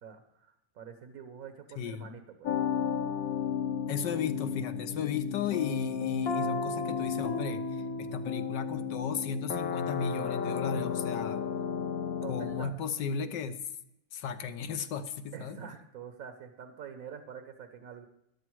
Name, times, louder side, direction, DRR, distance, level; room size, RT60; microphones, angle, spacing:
voice 1, 0.0-2.5 4.1-4.2 12.2-12.7 15.3-18.1, right 7 dB, 55° right, 8 dB, 1.3 m, -46 dB
voice 2, 1.8-2.1 3.9-7.6 8.0-11.5 12.3-13.6 14.1-15.6, left 6 dB, 70° left, 10 dB, 1.5 m, -35 dB
sound 1, 2.4-12.6, left 6 dB, 55° left, 1.4 m, -33 dB
13.5 x 11.0 x 4.7 m, 0.80 s
omnidirectional pair, 2.0 m